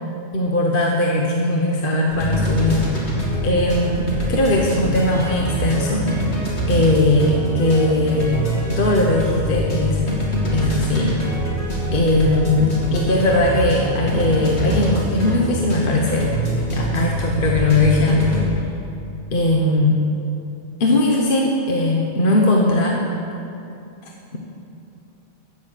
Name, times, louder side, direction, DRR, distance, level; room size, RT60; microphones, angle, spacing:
voice 1, 0.3-3.1 3.4-6.0 6.7-8.3 8.8-10.0 10.5-11.1 11.9-16.3 16.7-18.6 19.3-20.0 20.8-23.1, left 2 dB, 50° left, -1 dB, 1.2 m, -19 dB
sound 1, 2.1-18.4, equal, 65° left, 2.6 m, -24 dB
13.5 x 6.5 x 8.1 m, 2.7 s
omnidirectional pair, 1.2 m